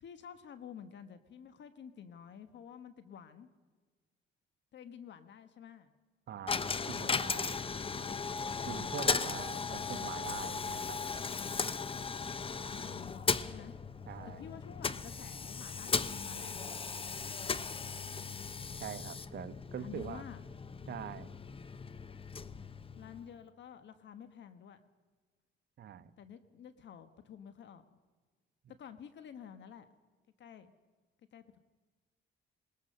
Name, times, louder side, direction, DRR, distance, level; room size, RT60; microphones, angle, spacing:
voice 1, 0.0-3.5 4.7-5.9 11.4-13.7 14.2-16.7 17.1-17.6 19.7-20.4 22.9-24.8 26.2-27.8 28.7-29.9 30.4-30.7 31.2-31.6, left 8 dB, 65° left, 10 dB, 1.2 m, -51 dB
voice 2, 6.3-7.6 8.6-11.0 14.1-14.4 18.8-20.2 20.9-21.3 25.8-26.1, right 9 dB, 60° right, 11 dB, 1.0 m, -44 dB
Coin (dropping), 6.5-23.4, left 5 dB, 25° left, 0.8 m, -37 dB
20.5 x 20.0 x 6.6 m, 1.3 s
cardioid pair, 90°, 20 cm